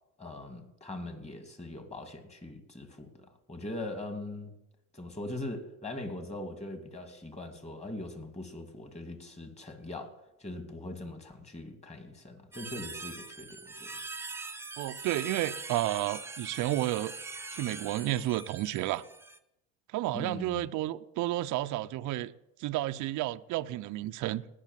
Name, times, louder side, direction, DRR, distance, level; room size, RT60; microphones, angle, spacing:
voice 1, 0.2-4.5 4.9-13.9 20.1-20.6, left 2 dB, 15° left, 2.7 m, -41 dB
sound 1, 12.5-19.4, right 3 dB, 5° right, 0.8 m, -42 dB
voice 2, 14.8-17.1 17.5-19.0 19.9-22.3 22.6-24.4, right 15 dB, 45° right, 0.7 m, -31 dB
18.5 x 6.3 x 7.5 m
supercardioid pair, 95°, 40 cm